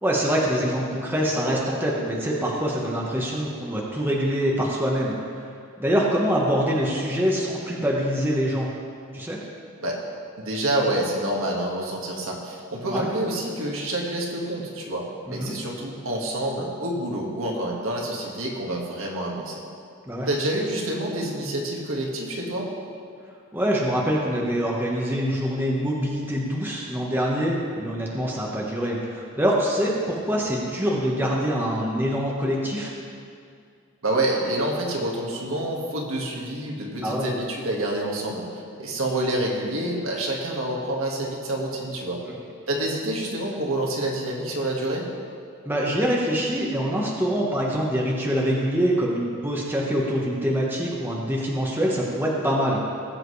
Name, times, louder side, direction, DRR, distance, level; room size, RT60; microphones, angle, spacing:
voice 1, 0.0-5.1 5.8-8.7 9.1-9.4 12.9-13.1 15.3-15.5 20.1-20.3 23.5-32.9 37.0-37.3 45.6-52.9, equal, 10° right, -3 dB, 1.2 m, -24 dB
voice 2, 10.4-19.6 20.3-22.7 34.0-38.5 38.8-42.2 42.7-45.1, right 1 dB, 70° right, -1 dB, 1.8 m, -27 dB
19.0 x 7.7 x 3.3 m, 2.3 s
head